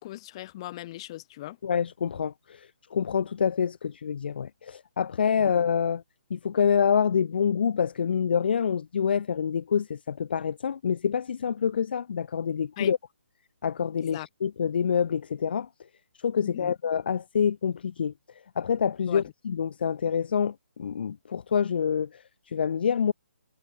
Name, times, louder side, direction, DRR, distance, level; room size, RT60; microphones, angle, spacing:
voice 1, 0.0-1.6 5.4-5.5 12.8-12.9 14.0-14.3 16.4-16.7 19.1-19.2, left 16 dB, 25° left, 2.7 m, -38 dB
voice 2, 1.6-6.0 6.3-13.0 13.6-15.7 16.2-18.1 18.6-23.1, left 7 dB, 45° left, 1.0 m, -27 dB
hypercardioid pair, 170°, 7 cm